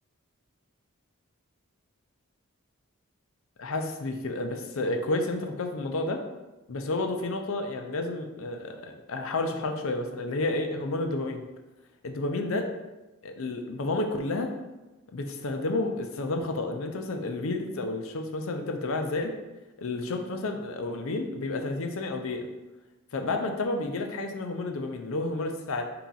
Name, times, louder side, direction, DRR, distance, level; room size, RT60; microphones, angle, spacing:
voice 1, 3.6-6.2 6.7-11.4 12.0-12.6 13.2-14.5 15.1-19.3 19.8-22.5 23.1-25.8, left 2 dB, 65° left, 5 dB, 0.5 m, -31 dB
4.6 x 2.9 x 3.9 m, 1.1 s
head